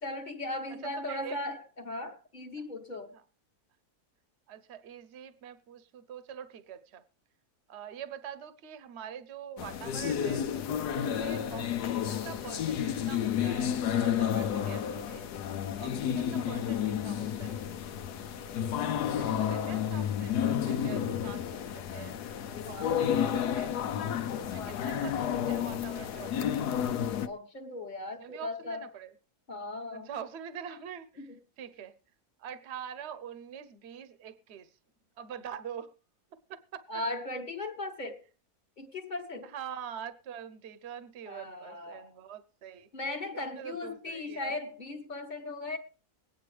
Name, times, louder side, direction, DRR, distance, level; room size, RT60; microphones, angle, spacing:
voice 1, 0.0-3.1 11.0-11.3 15.8-16.2 22.7-23.1 27.2-28.9 29.5-30.1 30.7-30.8 31.2-31.4 36.9-38.2 38.8-39.5 41.3-42.1 42.9-45.8, left 2 dB, 30° left, 1.4 m, -38 dB
voice 2, 0.8-1.4 4.5-7.0 7.7-10.5 10.9-15.3 15.8-17.7 18.7-22.2 22.7-23.8 24.4-26.9 28.2-29.1 29.9-31.9 32.4-34.7 35.2-35.9 36.5-36.8 39.5-42.9 43.3-44.5, right 8 dB, 50° right, 1.0 m, -44 dB
sound 1, 9.6-27.3, left 9 dB, 90° left, 1.3 m, -31 dB
22.0 x 9.4 x 3.3 m
omnidirectional pair, 1.7 m